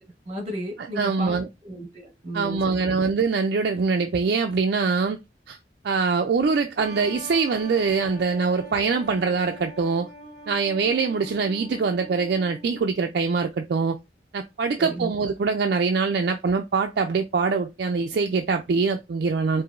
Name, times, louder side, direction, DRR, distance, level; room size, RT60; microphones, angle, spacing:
voice 1, 0.3-3.1 14.8-15.1, right 1 dB, 35° right, 1.2 m, -34 dB
voice 2, 0.8-1.5 2.3-5.2 5.5-5.6 5.8-10.1 10.5-14.0 14.3-19.6, right 4 dB, 55° right, 0.3 m, -23 dB
sound 1, 6.8-13.1, equal, 35° left, 1.5 m, -43 dB
4.7 x 2.5 x 2.5 m
head